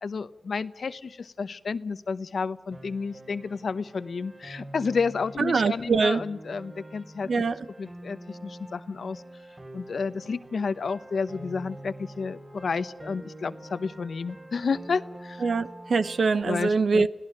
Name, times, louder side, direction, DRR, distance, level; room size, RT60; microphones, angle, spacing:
voice 1, 0.0-7.3 7.8-9.2 9.7-15.4 16.4-17.1, left 5 dB, 85° left, 0.9 m, -31 dB
Piano, 2.7-16.4, right 1 dB, 40° right, 4.8 m, -45 dB
voice 2, 5.5-6.2 7.3-7.6 15.4-17.1, right 4 dB, 80° right, 0.9 m, -23 dB
29.5 x 17.0 x 6.5 m
cardioid pair, 55°, 0 cm